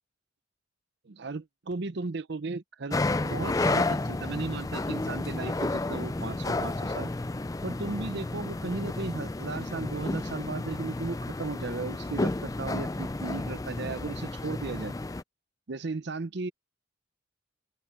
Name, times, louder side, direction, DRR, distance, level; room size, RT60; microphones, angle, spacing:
voice 1, 1.1-3.0 3.2-7.1 7.6-14.9 15.7-16.5, right 3 dB, 55° right, 0.6 m, -36 dB
sound 1, 2.9-15.2, left 2 dB, 15° left, 0.4 m, -31 dB
open air
head